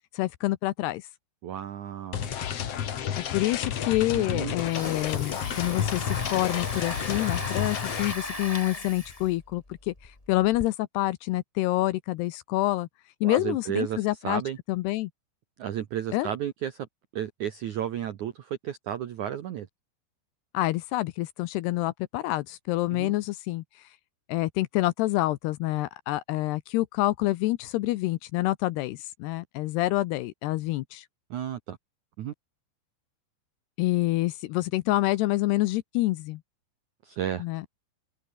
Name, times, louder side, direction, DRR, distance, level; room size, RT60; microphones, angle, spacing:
voice 1, 0.1-1.1 3.1-12.9 13.2-14.4 14.7-15.1 16.1-16.3 20.5-23.8 24.3-31.1 33.8-36.4 37.4-37.6, left 17 dB, 80° left, 2.6 m, -27 dB
voice 2, 1.4-2.3 4.1-4.6 13.2-14.6 15.6-16.9 17.1-19.7 22.9-23.1 31.3-31.8 32.2-32.3 37.0-37.4, right 10 dB, 75° right, 1.8 m, -33 dB
sound 1, 2.1-8.1, left 9 dB, 60° left, 1.7 m, -31 dB
Domestic sounds home sounds, 4.3-10.7, left 2 dB, 10° left, 2.1 m, -38 dB
open air
omnidirectional pair, 5.3 m